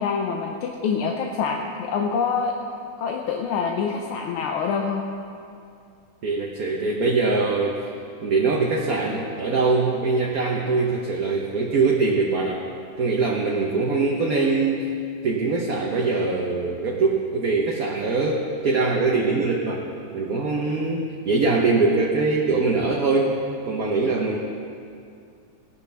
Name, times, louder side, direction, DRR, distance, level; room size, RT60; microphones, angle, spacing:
voice 1, 0.0-2.5 3.0-5.0, left 6 dB, 85° left, 2 dB, 1.6 m, -26 dB
voice 2, 6.2-7.9 8.2-12.6 13.0-14.8 15.2-19.9 20.1-23.4 23.6-24.4, right 3 dB, 55° right, -1 dB, 1.2 m, -22 dB
18.0 x 11.0 x 3.4 m, 2.4 s
omnidirectional pair, 2.3 m